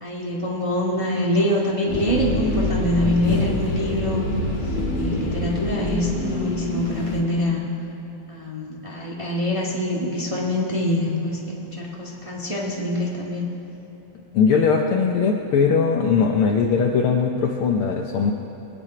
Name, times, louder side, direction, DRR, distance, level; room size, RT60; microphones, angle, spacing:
voice 1, 0.0-4.2 4.9-7.6 8.3-11.4 11.8-13.4, left 1 dB, 15° right, -5 dB, 1.2 m, -24 dB
sound 1, 1.9-7.2, left 2 dB, 25° left, 1.3 m, -26 dB
voice 2, 14.3-18.3, left 5 dB, 90° left, 1 dB, 1.2 m, -20 dB
22.5 x 9.7 x 4.9 m, 3.0 s
omnidirectional pair, 3.4 m